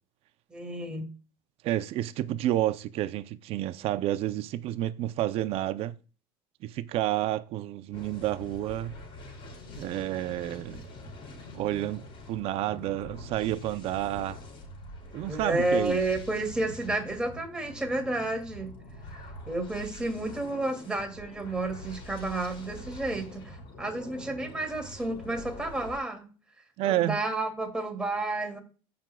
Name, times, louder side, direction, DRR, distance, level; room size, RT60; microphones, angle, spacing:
voice 1, 0.5-1.1 15.2-18.7 19.5-26.3 26.8-28.6, right 2 dB, 5° right, 2.5 m, -31 dB
voice 2, 1.6-6.0 6.6-9.0 9.8-10.8 11.5-14.4 15.1-16.0 26.8-27.2, right 14 dB, 55° right, 0.6 m, -30 dB
sound 1, 7.9-26.0, left 1 dB, 50° left, 4.6 m, -45 dB
16.0 x 6.1 x 2.3 m
cardioid pair, 135°, 12 cm